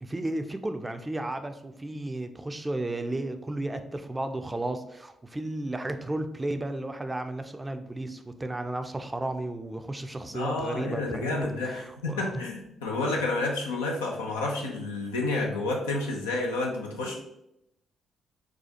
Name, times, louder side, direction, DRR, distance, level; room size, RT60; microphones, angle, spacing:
voice 1, 0.0-12.4, right 1 dB, 20° right, 8 dB, 0.4 m, -33 dB
voice 2, 10.3-17.1, left 2 dB, 90° left, 0 dB, 0.5 m, -30 dB
4.0 x 2.4 x 2.8 m, 0.81 s
hypercardioid pair, 45°, 0 cm